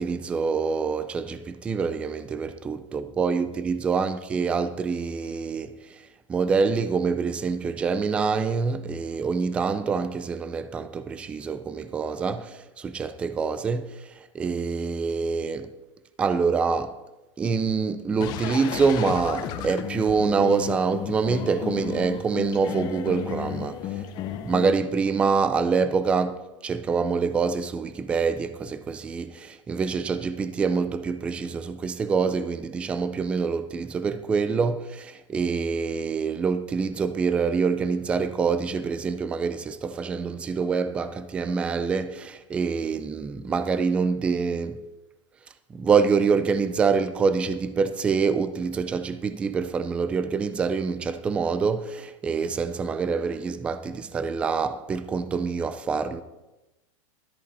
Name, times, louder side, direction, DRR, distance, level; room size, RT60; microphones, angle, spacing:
voice 1, 0.0-5.7 6.3-15.7 16.2-17.0 17.4-23.8 24.4-44.8 45.7-56.2, right 5 dB, 5° right, 0.3 m, -26 dB
sound 1, 18.2-24.7, left 10 dB, 25° left, 0.8 m, -33 dB
13.0 x 12.5 x 4.0 m
supercardioid pair, 170°, 17 cm